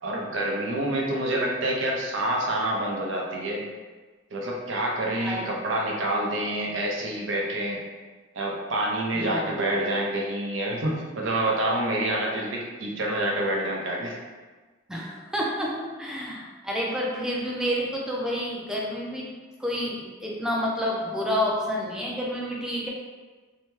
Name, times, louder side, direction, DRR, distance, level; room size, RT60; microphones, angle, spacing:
voice 1, 0.0-3.7 4.3-7.8 8.3-14.2, right 1 dB, 75° right, -2 dB, 0.6 m, -27 dB
voice 2, 9.1-9.6 14.9-19.3 19.6-22.9, equal, 5° right, -4 dB, 0.4 m, -29 dB
2.7 x 2.2 x 3.1 m, 1.3 s
head